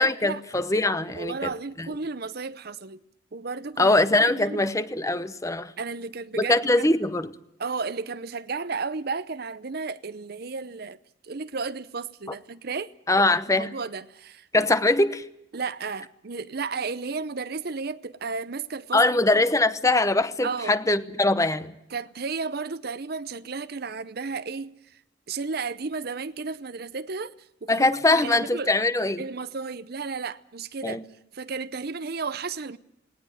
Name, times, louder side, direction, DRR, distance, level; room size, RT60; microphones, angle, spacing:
voice 1, 0.0-1.5 3.8-5.7 6.4-7.3 13.1-13.7 14.5-15.2 18.9-21.7 27.7-29.2 30.8-31.0, left 2 dB, 15° left, 0.9 m, -22 dB
voice 2, 1.1-3.0 3.3-4.7 5.8-6.9 7.6-12.9 13.5-14.7 15.5-19.0 20.4-20.8 21.9-25.0 25.3-28.7 29.2-31.0 31.3-32.8, right 4 dB, 55° right, 0.8 m, -33 dB
19.0 x 19.0 x 9.1 m
head